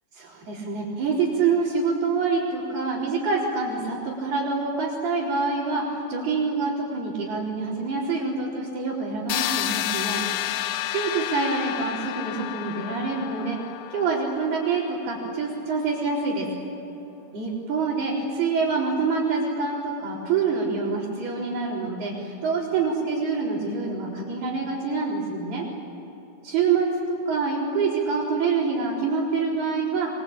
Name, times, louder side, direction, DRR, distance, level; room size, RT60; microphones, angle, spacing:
voice 1, 0.2-10.2 10.9-13.6 13.9-16.5 17.3-25.6 26.4-30.1, right 4 dB, 55° right, -7 dB, 6.0 m, -26 dB
sound 1, 9.3-15.1, left 13 dB, 80° left, 3.1 m, -30 dB
26.0 x 24.0 x 8.9 m, 3.0 s
omnidirectional pair, 5.4 m